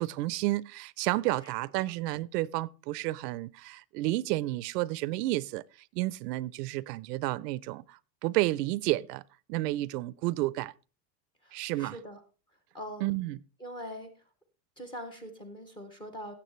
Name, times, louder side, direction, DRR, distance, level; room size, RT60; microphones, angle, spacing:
voice 1, 0.0-5.6 5.9-9.2 9.5-10.7 11.5-12.0 13.0-13.4, right 18 dB, 75° right, 0.5 m, -31 dB
voice 2, 11.4-12.2 12.7-13.1 13.6-14.1 14.8-16.3, equal, 10° left, 0.5 m, -42 dB
17.0 x 7.3 x 3.1 m
supercardioid pair, 175°, 49 cm